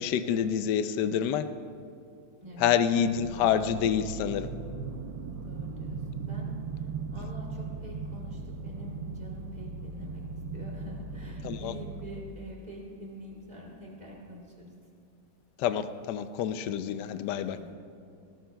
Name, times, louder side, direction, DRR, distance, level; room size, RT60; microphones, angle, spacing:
voice 1, 0.0-1.4 2.6-4.5 11.4-11.7 15.6-17.6, left 8 dB, 75° left, 10 dB, 1.2 m, -27 dB
voice 2, 2.4-2.7 3.0-3.5 5.3-14.7 17.5-17.8, equal, 25° right, -3 dB, 3.1 m, -46 dB
sound 1, 3.2-12.3, right 4 dB, 80° right, 1.3 m, -38 dB
20.0 x 18.5 x 2.3 m, 2.4 s
omnidirectional pair, 2.0 m